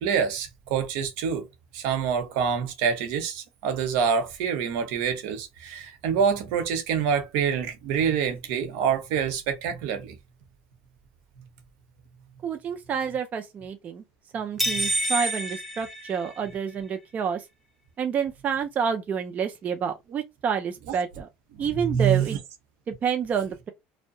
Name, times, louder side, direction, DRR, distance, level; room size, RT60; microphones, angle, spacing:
voice 1, 0.0-1.5 1.7-10.2 21.7-22.4, right 7 dB, 75° right, 0.8 m, -26 dB
voice 2, 12.4-14.0 14.3-17.5 18.0-21.3 21.6-22.4 22.9-23.7, right 7 dB, 35° right, 0.4 m, -28 dB
sound 1, 14.6-16.7, right 1 dB, 5° right, 0.7 m, -28 dB
2.6 x 2.1 x 2.6 m
supercardioid pair, 110°, 5 cm